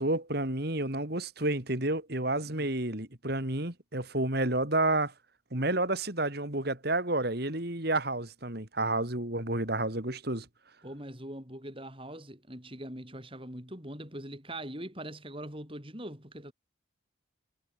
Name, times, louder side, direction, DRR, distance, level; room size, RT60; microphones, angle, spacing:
voice 1, 0.0-5.1 5.5-10.5, right 2 dB, 50° right, 3.3 m, -30 dB
voice 2, 10.8-16.5, right 1 dB, 25° right, 7.2 m, -42 dB
head